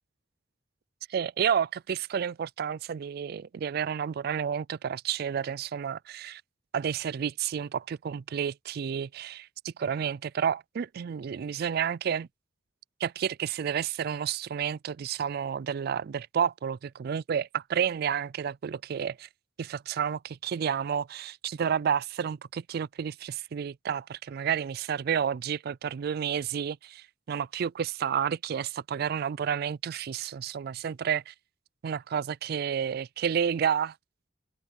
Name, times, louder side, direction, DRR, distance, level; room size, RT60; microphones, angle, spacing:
voice 1, 1.1-6.4 6.7-12.3 13.0-19.3 19.6-31.3 31.8-33.9, right 8 dB, 55° right, 0.3 m, -30 dB
open air
head